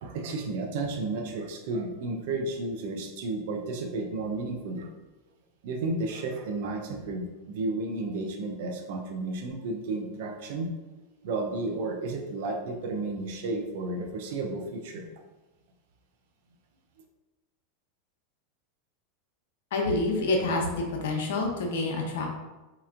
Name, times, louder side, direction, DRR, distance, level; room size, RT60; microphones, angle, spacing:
voice 1, 0.0-4.9 5.6-10.7 11.2-15.1, right 2 dB, 70° right, 3 dB, 0.5 m, -32 dB
voice 2, 19.7-22.3, left 2 dB, 75° left, 1 dB, 0.7 m, -27 dB
4.2 x 2.9 x 2.5 m, 1.1 s
supercardioid pair, 120°, 0 cm